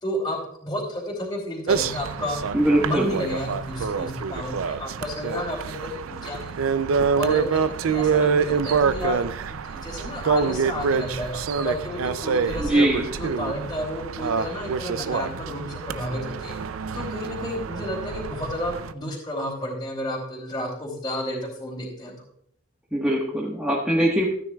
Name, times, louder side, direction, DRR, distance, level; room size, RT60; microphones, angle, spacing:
voice 1, 0.0-2.4 2.8-6.7 7.2-12.8 13.2-16.5 16.9-22.1, left 1 dB, 20° left, -4 dB, 2.7 m, -31 dB
sound 1, 1.7-18.9, right 5 dB, 80° right, 0.5 m, -26 dB
voice 2, 2.5-3.1 12.6-13.1 22.9-24.2, right 1 dB, 5° right, -6 dB, 1.3 m, -21 dB
14.0 x 9.6 x 2.3 m, 0.69 s
head